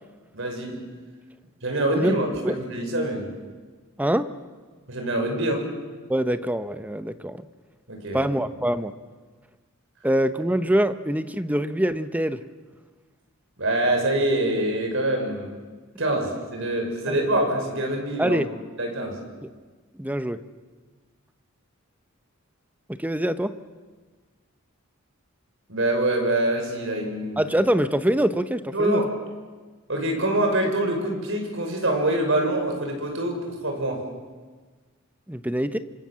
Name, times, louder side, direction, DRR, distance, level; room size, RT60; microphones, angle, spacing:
voice 1, 0.3-0.7 1.6-3.3 4.9-5.7 7.9-8.2 13.6-15.5 16.0-18.4 18.8-19.2 25.7-27.4 28.7-29.1 29.9-34.0, right 1 dB, 65° right, 3 dB, 6.1 m, -25 dB
voice 2, 4.0-4.3 6.1-7.5 8.1-8.9 10.0-12.4 17.1-17.2 18.2-18.5 20.0-20.4 23.0-23.5 27.4-29.0 35.3-35.8, right 1 dB, 10° right, 11 dB, 0.9 m, -24 dB
27.0 x 26.0 x 7.5 m, 1.4 s
head